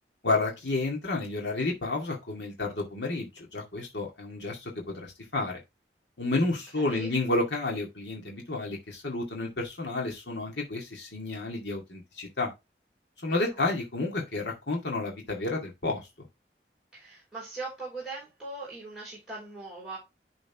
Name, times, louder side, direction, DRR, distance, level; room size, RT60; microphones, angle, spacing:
voice 1, 0.2-5.6 6.2-12.5 13.2-16.1, left 2 dB, 85° left, 2.1 m, -31 dB
voice 2, 6.8-7.1 13.3-13.4 16.9-20.0, right 3 dB, 5° right, 4.7 m, -40 dB
11.0 x 4.0 x 3.5 m
head